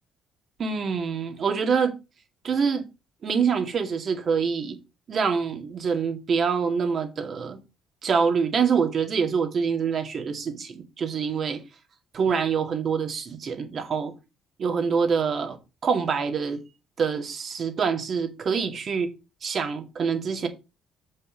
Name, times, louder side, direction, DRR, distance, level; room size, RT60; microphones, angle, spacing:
voice 1, 0.6-1.9 2.4-2.8 3.2-4.8 5.1-7.6 8.0-11.6 12.1-14.1 14.6-15.6 15.8-16.6 17.0-19.1 19.4-20.5, right 6 dB, 45° right, 2.2 m, -25 dB
8.0 x 5.6 x 5.2 m
cardioid pair, 120°, 0 cm